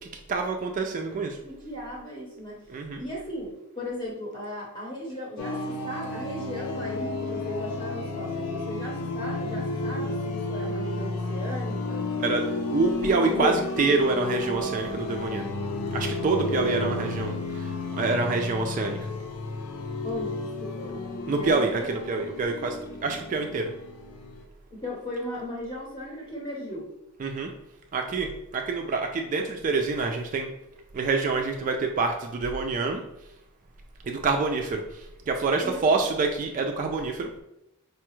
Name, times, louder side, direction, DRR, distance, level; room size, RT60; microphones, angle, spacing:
voice 1, 0.0-1.4 2.7-3.0 12.2-12.5 12.7-15.5 15.9-19.1 21.3-22.8 23.0-23.7 27.2-27.5 27.9-30.5 30.9-33.0 34.0-37.3, right 3 dB, 35° right, 3 dB, 0.3 m, -27 dB
voice 2, 1.4-2.7 3.0-12.3 13.3-13.9 16.3-17.1 20.0-21.9 24.7-26.9 35.6-35.9, equal, 25° left, -4 dB, 0.8 m, -36 dB
sound 1, 5.4-24.4, left 2 dB, 80° left, 0.5 m, -32 dB
4.7 x 2.3 x 3.0 m, 0.86 s
head